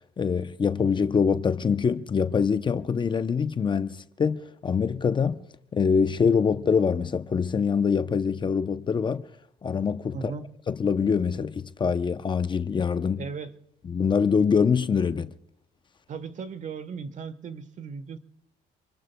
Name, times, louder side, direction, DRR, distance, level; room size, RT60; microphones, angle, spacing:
voice 1, 0.2-5.4 5.7-9.2 9.6-10.2 10.7-13.2 13.9-15.3, left 6 dB, 30° left, 0.6 m, -24 dB
voice 2, 10.1-10.5 13.2-13.5 16.1-18.2, right 5 dB, 45° right, 1.2 m, -37 dB
29.0 x 22.5 x 2.2 m
cardioid pair, 110°, 17 cm